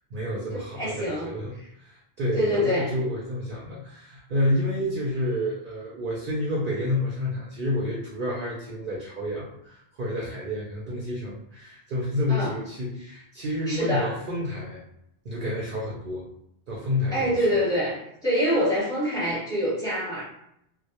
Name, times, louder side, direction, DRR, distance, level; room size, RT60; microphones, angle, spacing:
voice 1, 0.1-1.5 1.8-14.8 15.3-16.3 16.7-17.3, left 1 dB, 60° right, -5 dB, 0.6 m, -29 dB
voice 2, 0.7-1.3 2.3-2.9 12.3-12.5 13.7-14.2 17.1-20.2, equal, 5° left, -8 dB, 0.8 m, -25 dB
2.1 x 2.1 x 2.8 m, 0.76 s
omnidirectional pair, 1.1 m